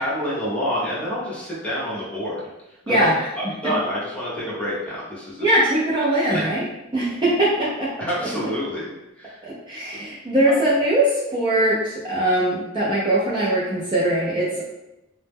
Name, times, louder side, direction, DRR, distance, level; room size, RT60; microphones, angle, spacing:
voice 1, 0.0-2.4 2.9-3.1 3.6-5.4 6.3-6.5 8.1-8.9 9.2-9.4, equal, 5° left, -9 dB, 0.8 m, -27 dB
voice 2, 2.9-3.3 3.6-3.7 5.4-6.7 6.9-7.9 9.4-14.7, right 1 dB, 25° right, -8 dB, 0.4 m, -21 dB
2.1 x 2.0 x 3.4 m, 0.95 s
head